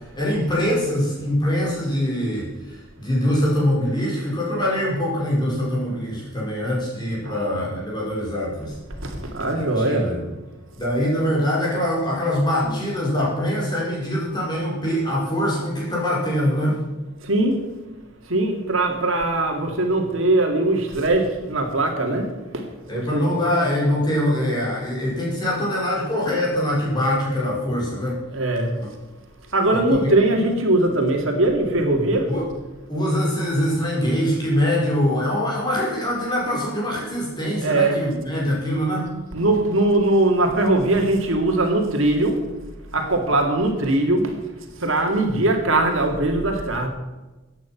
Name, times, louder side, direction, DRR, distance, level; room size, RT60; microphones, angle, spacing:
voice 1, 0.0-8.8 9.5-10.2 10.7-16.8 22.9-28.2 28.8-28.9 29.7-30.1 32.3-32.5 32.9-39.1, equal, 20° left, -4 dB, 5.0 m, -23 dB
voice 2, 7.2-7.7 9.0-10.2 12.6-12.8 17.2-17.6 18.2-23.4 28.3-28.8 29.5-32.3 37.6-38.1 39.3-42.4 42.9-46.9, right 2 dB, 70° right, 2 dB, 2.4 m, -21 dB
15.5 x 9.3 x 5.9 m, 1.1 s
head